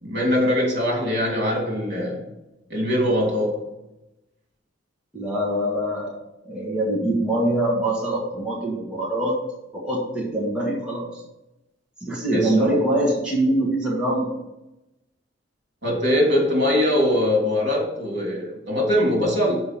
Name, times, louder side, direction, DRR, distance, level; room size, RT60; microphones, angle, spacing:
voice 1, 0.0-2.2 2.7-3.6 12.3-12.7 15.8-19.6, left 1 dB, 55° right, -2 dB, 2.9 m, -22 dB
voice 2, 5.1-6.1 6.4-9.4 9.7-11.2 12.0-14.3, right 1 dB, 5° right, -6 dB, 1.6 m, -24 dB
6.8 x 5.2 x 5.8 m, 0.92 s
head